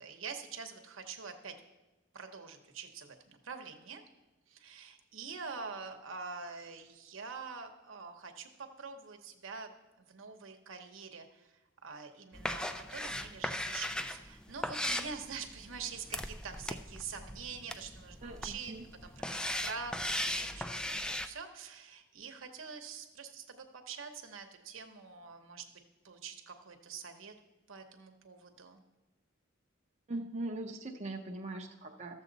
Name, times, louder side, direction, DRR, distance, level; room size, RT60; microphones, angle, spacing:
voice 1, 0.0-1.5 2.1-4.0 4.5-9.7 10.0-18.7 19.0-25.6 26.0-27.3 27.7-28.8, right 5 dB, 80° right, 5 dB, 1.0 m, -45 dB
sound 1, 12.3-21.3, left 1 dB, 5° left, 0.3 m, -38 dB
voice 2, 18.2-18.9 30.1-32.2, right 2 dB, 35° right, 2 dB, 0.7 m, -41 dB
13.0 x 7.2 x 4.0 m, 1.1 s
head